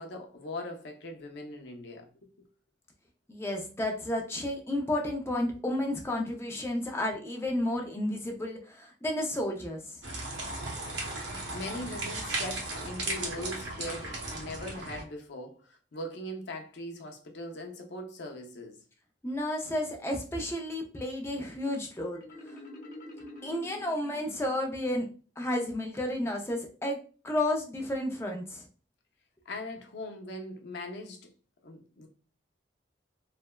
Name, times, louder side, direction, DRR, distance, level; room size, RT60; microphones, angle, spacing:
voice 1, 0.0-2.3 10.9-11.1 11.5-18.8 29.5-31.3 31.6-32.1, left 1 dB, 70° left, 0.6 m, -40 dB
voice 2, 3.3-10.0 19.2-22.6 23.4-25.1 25.4-27.0 27.2-28.6, left 1 dB, 15° left, 0.4 m, -32 dB
sound 1, 10.0-15.0, right 2 dB, 80° right, 0.8 m, -36 dB
Marimba xylophone, 22.1-24.9, left 1 dB, 45° left, 0.9 m, -47 dB
3.3 x 2.1 x 2.2 m
head